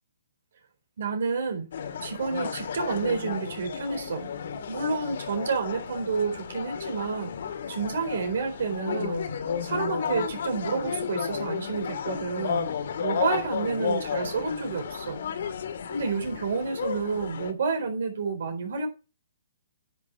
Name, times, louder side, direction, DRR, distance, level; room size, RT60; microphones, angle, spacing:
voice 1, 1.0-1.7 2.0-4.3 4.7-7.3 7.7-9.2 9.6-12.7 13.0-15.2 15.9-18.9, right 4 dB, 65° right, 4.2 m, -29 dB
sound 1, 1.7-17.5, left 7 dB, 60° left, 2.0 m, -33 dB
9.8 x 6.1 x 5.6 m
hypercardioid pair, 160°, 0 cm